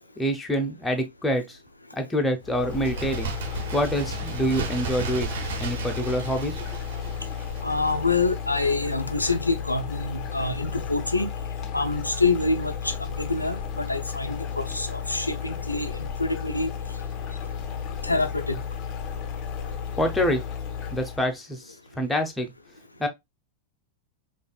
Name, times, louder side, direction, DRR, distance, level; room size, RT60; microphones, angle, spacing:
voice 1, 0.2-1.6 1.9-3.3 3.7-6.6 20.0-20.4 20.9-22.5 23.0-23.1, equal, 5° left, 0.7 m, -26 dB
sound 1, 2.4-21.3, left 7 dB, 35° left, 0.5 m, -33 dB
Bird, 2.7-8.2 8.5-8.6, right 7 dB, 55° right, 0.6 m, -35 dB
voice 2, 7.6-11.3 11.7-16.7 18.0-18.6, left 3 dB, 85° left, 0.4 m, -26 dB
4.9 x 2.5 x 2.2 m
figure-of-eight pair, 90°, 0 cm